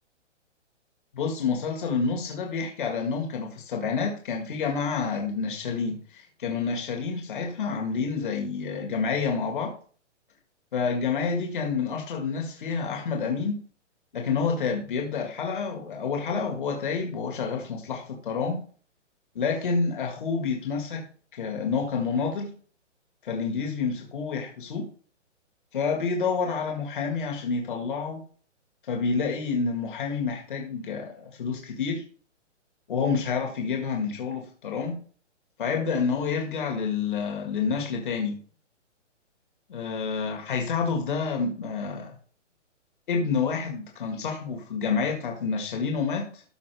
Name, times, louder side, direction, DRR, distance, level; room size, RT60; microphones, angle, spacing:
voice 1, 1.1-9.7 10.7-13.6 14.1-18.6 19.4-21.1 21.3-22.5 23.2-24.9 25.7-28.2 28.9-32.0 32.9-35.0 35.6-38.4 39.7-42.1 43.1-46.4, left 5 dB, 40° left, 2 dB, 1.8 m, -28 dB
13.0 x 5.1 x 3.3 m, 0.42 s
hypercardioid pair, 175°, 37 cm